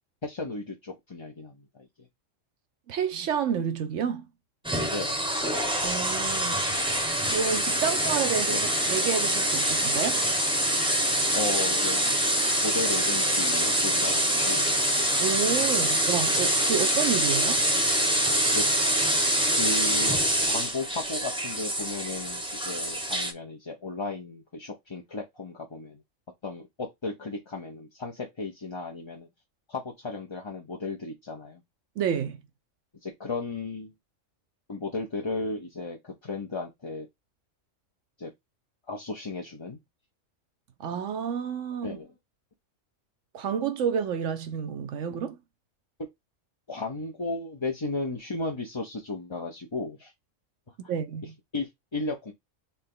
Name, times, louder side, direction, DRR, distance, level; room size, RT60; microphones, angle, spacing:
voice 1, 0.2-1.9 4.9-5.2 8.5-8.6 11.3-12.0 12.6-14.7 18.5-18.6 19.5-26.0 26.4-29.3 29.7-31.6 33.0-33.9 34.7-37.1 38.2-38.3 38.9-39.8 41.8-42.1 46.7-50.1 50.8-50.9 51.5-52.3, left 3 dB, 25° left, 0.7 m, -35 dB
voice 2, 2.9-4.3 5.8-6.7 7.3-10.2 15.2-17.6 32.0-32.4 40.8-42.0 43.3-45.4 50.8-51.3, right 7 dB, 70° right, 0.9 m, -30 dB
sound 1, 4.6-23.3, right 1 dB, 5° right, 0.8 m, -25 dB
4.2 x 3.3 x 3.8 m
omnidirectional pair, 1.3 m